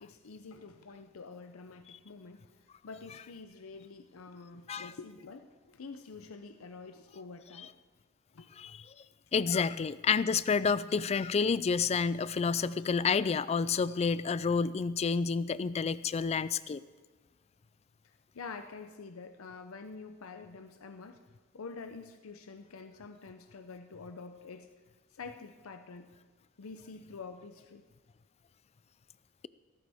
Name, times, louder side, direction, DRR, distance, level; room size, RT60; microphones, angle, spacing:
voice 1, 0.0-7.8 8.3-8.5 18.0-21.3 21.5-24.7 25.1-26.1 26.6-27.9, left 4 dB, 80° left, 8 dB, 0.6 m, -47 dB
voice 2, 9.3-16.8, left 5 dB, 30° left, 17 dB, 0.3 m, -29 dB
16.5 x 14.0 x 3.5 m, 1.3 s
head